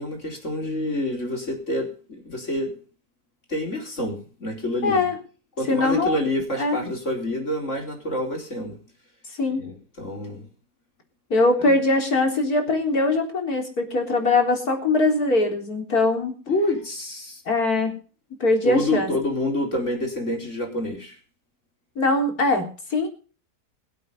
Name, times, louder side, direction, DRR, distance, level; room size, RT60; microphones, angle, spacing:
voice 1, 0.0-1.9 2.2-2.7 3.5-5.1 5.6-8.8 9.6-10.4 11.6-11.7 16.5-17.4 18.6-21.2, left 1 dB, 45° left, 2 dB, 4.8 m, -27 dB
voice 2, 4.8-5.2 5.7-6.2 6.6-6.8 9.4-9.6 11.3-16.3 17.5-17.9 18.4-19.1 22.0-23.1, left 2 dB, 65° left, 3 dB, 4.2 m, -21 dB
23.0 x 8.4 x 5.5 m, 0.38 s
omnidirectional pair, 1.7 m